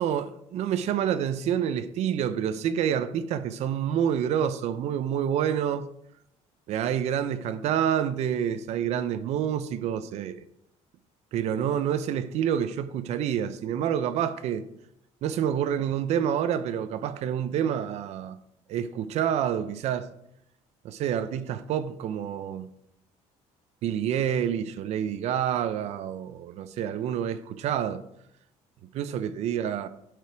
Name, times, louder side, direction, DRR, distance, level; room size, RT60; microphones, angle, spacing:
voice 1, 0.0-5.9 6.7-10.4 11.3-14.6 15.2-18.4 18.7-20.1 20.8-22.7 23.8-28.0 28.9-29.9, right 9 dB, 60° right, 0.6 m, -28 dB
10.5 x 5.1 x 4.6 m
cardioid pair, 130°, 13 cm